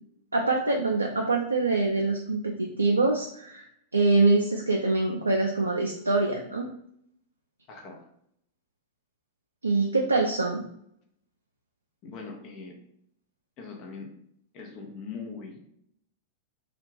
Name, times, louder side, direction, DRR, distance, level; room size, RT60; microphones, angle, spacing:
voice 1, 0.3-6.7 9.6-10.6, right 3 dB, 85° right, 1 dB, 0.3 m, -24 dB
voice 2, 7.7-8.0 12.0-12.8 13.6-14.1 14.5-15.6, left 5 dB, 40° left, 2 dB, 0.7 m, -41 dB
2.4 x 2.2 x 3.2 m, 0.72 s
figure-of-eight pair, 95°, 0 cm